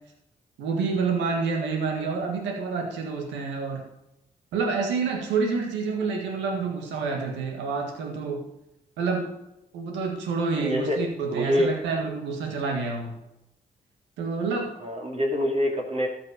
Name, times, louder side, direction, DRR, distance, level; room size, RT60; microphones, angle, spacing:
voice 1, 0.6-3.8 4.5-8.4 9.0-9.3 9.7-13.1 14.2-14.7, right 4 dB, 85° right, 2 dB, 1.7 m, -28 dB
voice 2, 10.6-11.0 11.3-11.7 14.8-16.1, equal, 35° right, -1 dB, 2.6 m, -25 dB
13.0 x 6.1 x 5.1 m, 0.86 s
hypercardioid pair, 40°, 18 cm